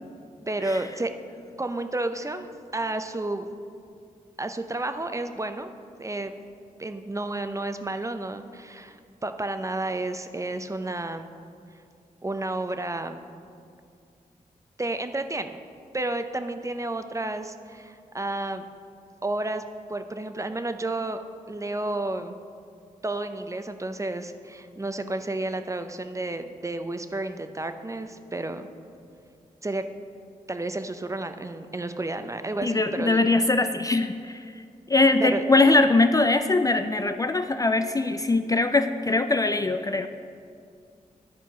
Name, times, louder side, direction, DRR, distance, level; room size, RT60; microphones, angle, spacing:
voice 1, 0.5-1.1 1.6-3.5 4.4-5.7 6.0-6.3 6.8-11.3 12.2-13.2 14.8-15.5 15.9-18.6 19.2-19.6 19.9-21.2 21.5-22.4 23.0-28.7 29.6-29.9 30.5-33.2 35.2-35.4, right 2 dB, 20° right, 8 dB, 0.6 m, -31 dB
voice 2, 32.6-34.4 34.9-40.1, left 2 dB, 25° left, 8 dB, 0.4 m, -22 dB
10.5 x 4.5 x 5.6 m, 2.4 s
cardioid pair, 50°, 15 cm